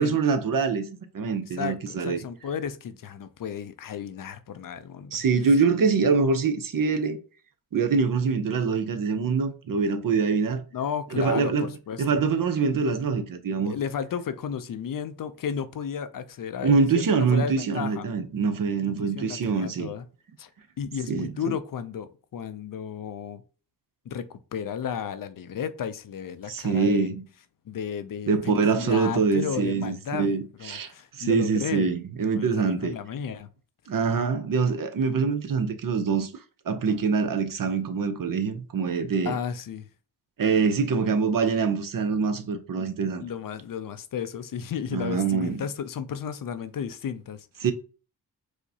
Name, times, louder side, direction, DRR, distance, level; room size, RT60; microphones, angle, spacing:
voice 1, 0.0-2.2 5.1-7.2 7.7-10.6 11.2-11.7 12.0-13.7 16.6-19.9 21.1-21.3 26.5-27.2 28.3-32.9 33.9-36.3 36.7-39.4 40.4-43.2 44.9-45.6 47.6-47.7, right 5 dB, 50° right, 0.7 m, -24 dB
voice 2, 1.5-5.2 10.7-12.2 13.7-17.0 17.3-18.1 19.0-20.1 20.4-20.5 20.8-23.4 24.1-27.1 27.7-30.3 30.6-31.9 32.3-33.5 39.2-39.9 43.2-47.5, left 7 dB, 55° left, 0.5 m, -33 dB
4.7 x 2.1 x 2.7 m
cardioid pair, 55°, 41 cm